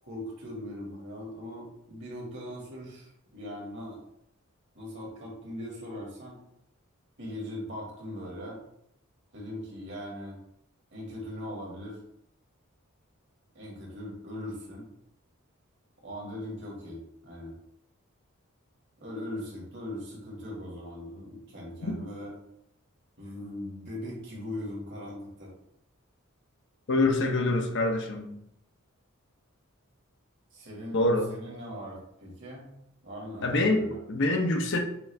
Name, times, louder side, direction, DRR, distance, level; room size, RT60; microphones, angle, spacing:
voice 1, 0.0-4.0 4.7-6.4 7.2-8.6 9.3-10.4 10.9-12.0 13.6-14.9 16.0-17.6 19.0-22.3 23.2-25.5 30.5-31.0 31.3-32.7 33.0-34.0, left 1 dB, 60° right, -3 dB, 1.8 m, -40 dB
voice 2, 26.9-28.3 30.9-31.3 33.4-34.8, left 2 dB, 60° left, 4 dB, 0.7 m, -25 dB
6.0 x 2.5 x 3.2 m, 0.75 s
head